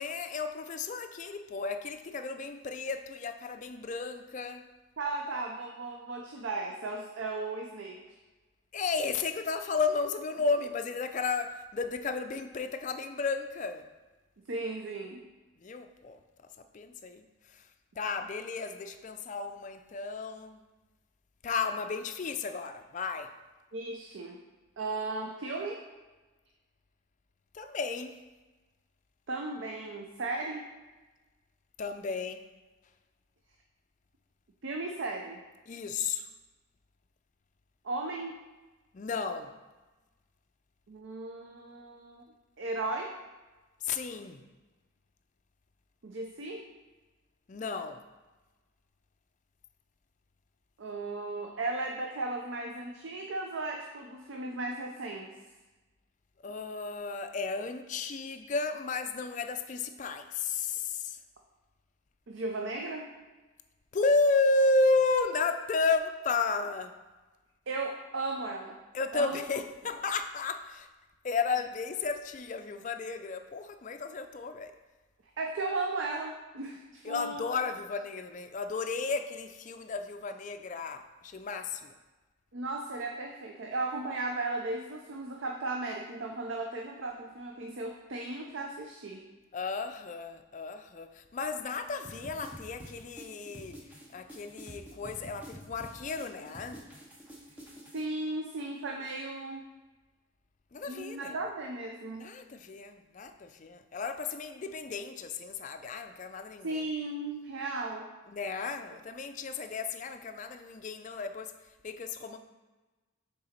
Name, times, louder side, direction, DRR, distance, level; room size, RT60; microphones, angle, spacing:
voice 1, 0.0-4.7 8.7-13.9 15.6-16.2 16.7-17.2 18.0-20.6 21.4-23.3 27.5-28.1 31.8-32.4 35.7-36.3 38.9-39.5 43.8-44.4 47.5-48.0 56.4-61.2 63.9-66.9 68.9-70.9 71.2-74.7 77.0-81.9 89.5-93.8 94.1-96.9 100.7-101.4 102.2-106.8 108.3-111.5 111.8-112.4, left 4 dB, 35° left, 8 dB, 0.4 m, -33 dB
voice 2, 5.0-8.0 14.5-15.2 23.7-24.4 24.8-25.8 29.3-30.7 34.6-35.4 37.8-38.4 40.9-42.2 42.6-43.1 46.0-46.6 50.8-55.3 62.3-63.1 67.7-68.8 69.1-69.4 75.4-77.5 82.5-89.2 97.9-99.7 100.9-102.3 106.6-108.1, right 2 dB, 65° right, 2 dB, 0.5 m, -36 dB
sound 1, 92.0-98.0, equal, 10° right, 0.8 m, -48 dB
6.6 x 4.0 x 4.3 m, 1.2 s
head